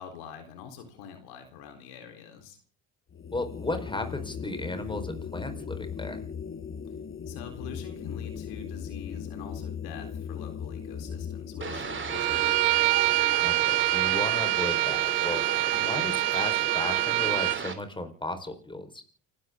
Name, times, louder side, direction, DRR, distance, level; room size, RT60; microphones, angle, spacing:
voice 1, 0.0-2.6 7.3-11.8 12.1-12.9 15.7-16.2, left 7 dB, 75° left, 6 dB, 3.9 m, -45 dB
sound 1, 3.1-14.4, left 7 dB, 30° left, 1.4 m, -39 dB
voice 2, 3.3-6.2 13.4-15.5 15.9-19.0, left 2 dB, 10° left, 8 dB, 4.5 m, -35 dB
sound 2, 11.6-17.8, right 5 dB, 30° right, 3.1 m, -34 dB
Bowed string instrument, 12.1-17.6, right 23 dB, 75° right, 0.8 m, -25 dB
29.5 x 13.0 x 3.8 m, 0.41 s
hypercardioid pair, 75°, 39 cm